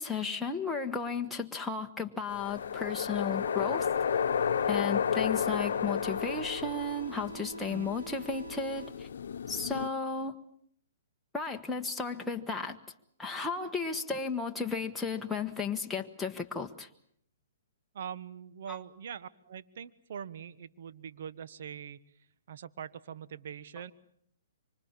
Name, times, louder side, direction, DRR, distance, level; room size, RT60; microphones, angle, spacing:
voice 1, 0.0-3.9 4.7-9.1 9.5-10.4 11.3-12.8 13.2-16.9 18.7-18.8, left 4 dB, 5° left, 1 dB, 1.4 m, -34 dB
sound 1, 2.3-9.9, left 7 dB, 70° left, 1.0 m, -32 dB
sound 2, 3.4-9.4, right 3 dB, 85° right, 4.6 m, -45 dB
voice 2, 17.9-22.0 22.5-23.9, right 8 dB, 60° right, 14 dB, 1.2 m, -43 dB
25.5 x 25.0 x 7.4 m, 0.66 s
hypercardioid pair, 130°, 0 cm